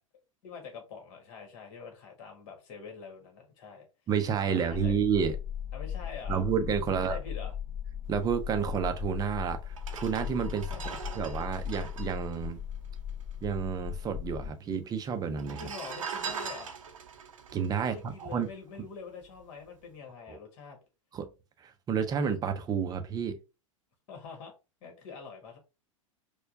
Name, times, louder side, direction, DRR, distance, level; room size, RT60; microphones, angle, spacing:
voice 1, 0.4-3.8 4.4-5.0 5.7-6.4 6.9-7.5 10.6-11.2 15.6-16.7 17.7-20.8 24.1-24.5 24.8-25.6, left 5 dB, 50° left, 1.6 m, -45 dB
voice 2, 4.1-5.4 6.3-7.2 8.1-10.7 11.2-12.6 13.4-15.7 17.5-18.5 20.3-20.4 21.1-21.3 21.6-23.4, right 7 dB, 20° right, 0.6 m, -30 dB
sound 1, 4.7-14.5, left 9 dB, ahead, 1.8 m, -38 dB
sound 2, 9.0-9.1 9.7-13.4 13.6-13.7 13.9-14.6 15.3-18.8 19.2-19.4, right 6 dB, 75° right, 0.7 m, -41 dB
4.3 x 2.3 x 2.6 m
figure-of-eight pair, 90°, 17 cm